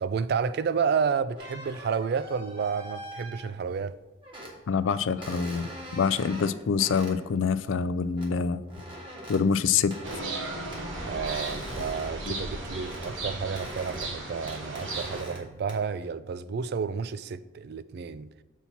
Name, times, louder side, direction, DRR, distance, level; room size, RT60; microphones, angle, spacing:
voice 1, 0.0-3.9 11.0-18.3, right 6 dB, 55° right, 0.3 m, -30 dB
sound 1, 1.3-3.8 4.2-4.6 5.2-7.2 8.2-8.3 8.7-9.4 9.9-10.3 10.7-13.1 13.4-14.2 14.5-15.4 15.7-16.1, equal, 25° right, 1.6 m, -42 dB
voice 2, 4.7-5.7 5.9-8.6 9.3-9.9 12.3-12.4, left 6 dB, 75° left, 0.4 m, -25 dB
sound 2, 10.0-15.2, right 2 dB, 85° right, 1.2 m, -36 dB
7.1 x 4.2 x 5.8 m
head